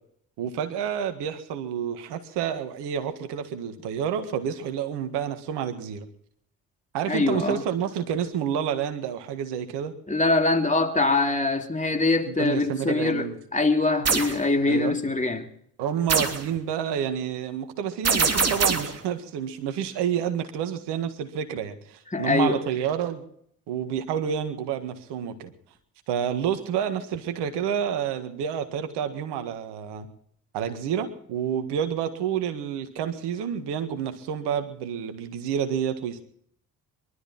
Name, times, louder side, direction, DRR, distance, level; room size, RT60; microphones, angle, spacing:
voice 1, 0.4-6.1 6.9-9.9 12.3-13.4 14.7-15.0 15.8-23.2 23.7-25.5 26.1-30.1 30.5-36.2, right 8 dB, 70° right, 1.8 m, -29 dB
voice 2, 7.1-7.6 10.1-15.4 22.1-22.6, left 3 dB, 15° left, 3.2 m, -23 dB
sound 1, 14.0-14.4 16.1-16.5 18.0-19.0, right 5 dB, 35° right, 3.0 m, -23 dB
23.5 x 13.0 x 4.4 m
hypercardioid pair, 45°, 42 cm